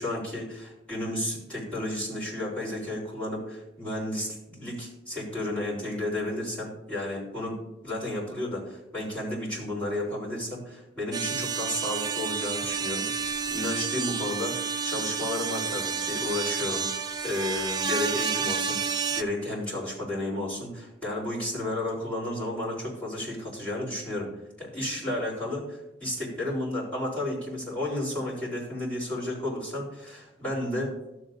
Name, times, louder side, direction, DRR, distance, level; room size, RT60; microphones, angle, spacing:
voice 1, 0.0-13.1 13.5-16.9 17.2-24.3 24.6-31.0, left 1 dB, 5° left, -8 dB, 3.6 m, -32 dB
sound 1, 11.1-19.2, right 5 dB, 20° right, 0.4 m, -30 dB
13.0 x 7.2 x 2.6 m, 0.94 s
head